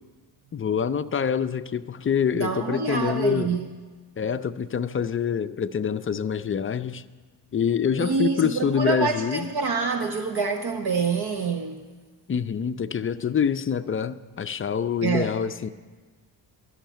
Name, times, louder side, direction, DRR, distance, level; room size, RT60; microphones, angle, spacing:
voice 1, 0.5-3.5 4.2-7.0 7.5-9.5 12.3-15.7, left 7 dB, 30° left, 0.4 m, -26 dB
voice 2, 2.3-3.7 8.0-11.8 15.0-15.3, right 5 dB, 50° right, 0.9 m, -26 dB
13.0 x 6.5 x 9.1 m
cardioid pair, 80°, 48 cm